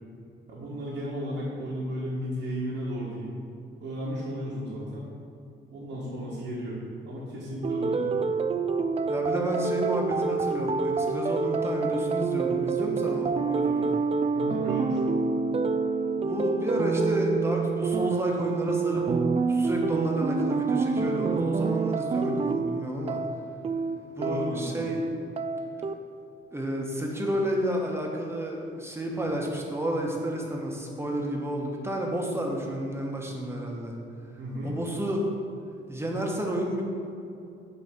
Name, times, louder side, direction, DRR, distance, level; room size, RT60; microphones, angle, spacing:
voice 1, 0.5-3.4 3.8-5.1 5.7-6.8 7.0-8.1 14.3-15.0 24.2-24.8 34.4-34.7, equal, 75° right, -7 dB, 1.6 m, -34 dB
sound 1, 7.6-25.9, right 4 dB, 30° right, 0.4 m, -27 dB
voice 2, 9.1-13.9 16.1-19.0 19.4-23.2 24.2-25.0 26.5-34.0 34.6-35.3 35.9-36.8, equal, 10° right, -1 dB, 1.3 m, -31 dB
8.3 x 3.1 x 6.2 m, 2.6 s
cardioid pair, 90°, 20 cm